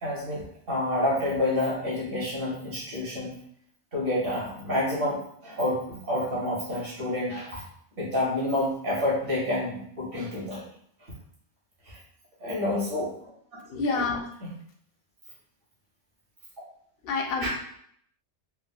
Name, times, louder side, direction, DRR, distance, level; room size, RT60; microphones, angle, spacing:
voice 1, 0.0-3.3 3.9-7.6 8.0-10.6 11.9-12.0 12.4-13.3 14.4-14.5 17.4-17.5, left 1 dB, 50° right, -5 dB, 1.1 m, -28 dB
voice 2, 13.7-14.3 17.1-17.5, left 4 dB, 60° left, 1 dB, 0.7 m, -27 dB
3.5 x 2.3 x 2.2 m, 0.67 s
omnidirectional pair, 1.2 m